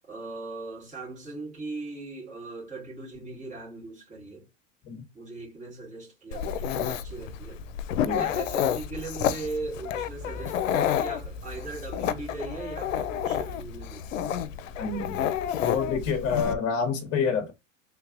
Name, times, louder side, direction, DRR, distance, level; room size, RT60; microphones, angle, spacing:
voice 1, 0.1-4.5 5.1-7.6 8.1-14.5, right 3 dB, 20° right, 2.1 m, -39 dB
Dog, 6.3-16.5, left 9 dB, 90° left, 0.5 m, -30 dB
voice 2, 14.8-15.3 15.6-17.5, left 6 dB, 40° left, 1.1 m, -28 dB
3.2 x 3.1 x 2.4 m
hypercardioid pair, 125°, 37 cm